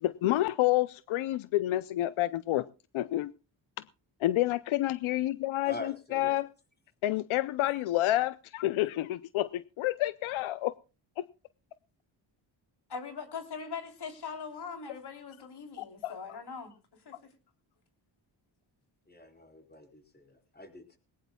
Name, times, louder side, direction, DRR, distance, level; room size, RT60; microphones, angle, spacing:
voice 1, 0.0-2.6 2.9-3.3 4.2-6.5 7.0-10.7 11.2-11.3 15.8-16.1, left 15 dB, 90° left, 0.6 m, -29 dB
voice 2, 5.6-6.4 19.1-21.0, left 2 dB, 20° left, 4.1 m, -45 dB
voice 3, 12.9-17.3, left 5 dB, 55° left, 3.4 m, -41 dB
19.5 x 18.5 x 2.3 m
cardioid pair, 75°, 47 cm